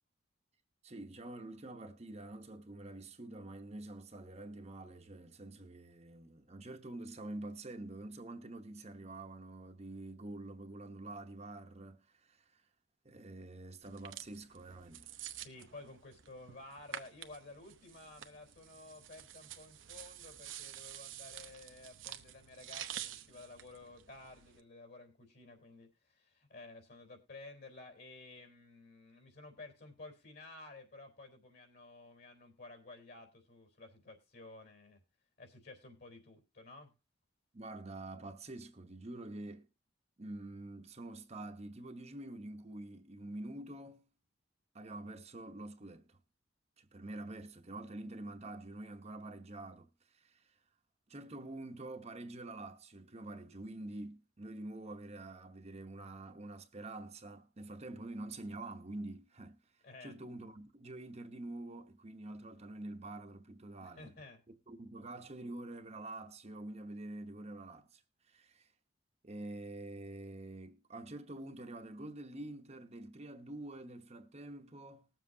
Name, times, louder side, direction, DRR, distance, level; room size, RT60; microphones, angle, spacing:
voice 1, 0.8-12.6 13.0-15.1 37.5-39.7 40.2-44.0 44.7-46.2 46.8-50.5 51.1-59.6 60.0-64.1 64.7-68.0 68.3-68.7 69.2-75.1, right 2 dB, 35° right, 0.9 m, -47 dB
sound 1, 13.8-24.6, right 10 dB, 70° right, 0.9 m, -49 dB
voice 2, 15.3-35.0 35.4-36.9 59.8-60.2 63.8-64.4, left 2 dB, 55° left, 3.8 m, -53 dB
20.0 x 7.5 x 2.7 m
head